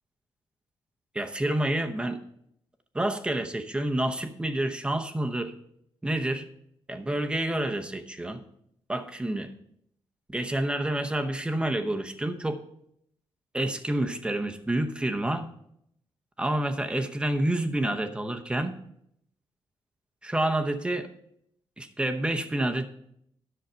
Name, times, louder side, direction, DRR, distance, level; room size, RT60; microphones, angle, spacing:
voice 1, 1.1-2.2 2.9-5.5 6.0-6.5 6.9-8.4 8.9-9.5 10.3-12.6 13.5-15.5 16.4-18.7 20.2-21.1 21.8-22.9, right 1 dB, 10° right, 6 dB, 0.8 m, -28 dB
10.5 x 6.4 x 5.5 m, 0.74 s
cardioid pair, 125°, 9 cm